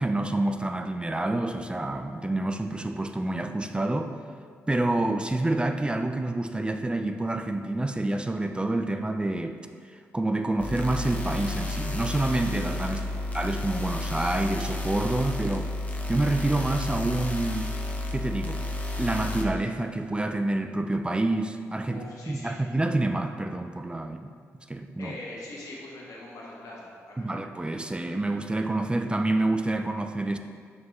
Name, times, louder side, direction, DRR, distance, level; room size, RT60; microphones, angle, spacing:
voice 1, 0.0-4.1 4.7-9.6 9.9-13.0 13.3-15.7 16.1-17.7 18.1-18.6 19.0-22.0 22.3-24.3 24.7-25.1 27.2-30.4, right 2 dB, 15° right, 7 dB, 0.4 m, -28 dB
sound 1, 10.6-19.4, left 2 dB, 25° left, 0.9 m, -31 dB
voice 2, 12.9-13.2 21.9-22.6 25.0-27.3, left 2 dB, 70° left, -4 dB, 1.4 m, -42 dB
6.2 x 4.9 x 3.1 m, 2.1 s
supercardioid pair, 50°, 6 cm